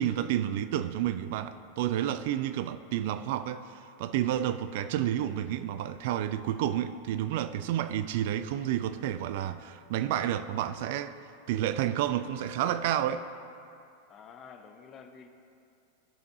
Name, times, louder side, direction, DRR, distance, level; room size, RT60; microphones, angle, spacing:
voice 1, 0.0-11.2 11.5-13.3, right 11 dB, 50° right, 11 dB, 0.3 m, -30 dB
voice 2, 14.1-15.3, left 6 dB, 30° left, 7 dB, 0.7 m, -49 dB
15.0 x 6.5 x 2.7 m, 2.5 s
figure-of-eight pair, 90°, 0 cm